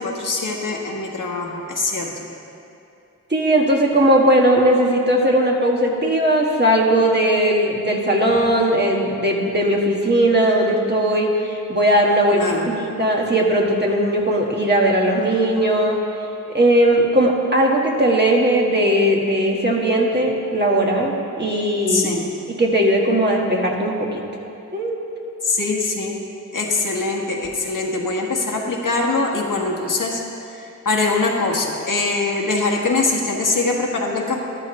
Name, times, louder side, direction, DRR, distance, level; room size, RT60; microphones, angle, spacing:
voice 1, 0.0-2.3 12.3-12.7 21.9-22.3 25.4-26.2 26.5-34.4, left 3 dB, 75° left, 0 dB, 1.4 m, -23 dB
voice 2, 3.3-16.0 16.5-22.1 22.6-24.2 24.7-25.0, right 1 dB, 35° right, -1 dB, 1.6 m, -18 dB
13.0 x 12.0 x 3.1 m, 2.7 s
wide cardioid pair, 65°, 31 cm